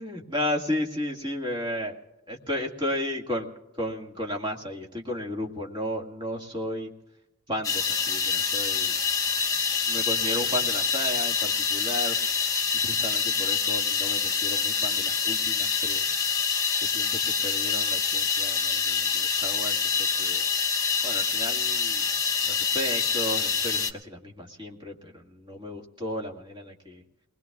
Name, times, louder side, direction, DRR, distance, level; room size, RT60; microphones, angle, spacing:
voice 1, 0.0-2.0 2.3-6.9 7.5-9.0 9.9-12.2 12.7-16.1 16.8-20.5 21.0-22.1 22.4-27.0, left 1 dB, 20° right, 0 dB, 1.9 m, -34 dB
sound 1, 7.6-23.9, left 6 dB, 15° left, 1.0 m, -26 dB
29.0 x 21.0 x 2.4 m, 0.99 s
head